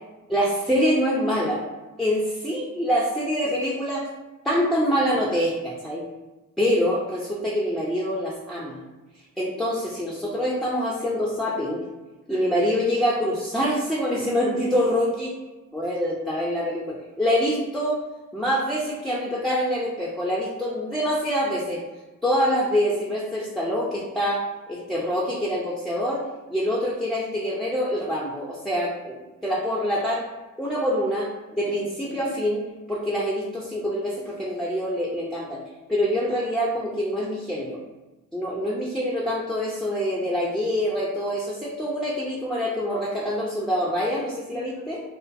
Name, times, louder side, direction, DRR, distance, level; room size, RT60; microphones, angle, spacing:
voice 1, 0.3-1.6 2.0-4.1 4.4-6.1 6.6-8.8 9.4-11.8 12.3-15.3 15.7-18.0 18.3-21.8 22.2-26.2 26.5-29.2 29.4-30.2 30.6-32.6 32.9-35.6 35.9-37.8 38.3-45.0, equal, ahead, -4 dB, 0.3 m, -25 dB
2.4 x 2.4 x 2.4 m, 1.1 s
hypercardioid pair, 45°, 43 cm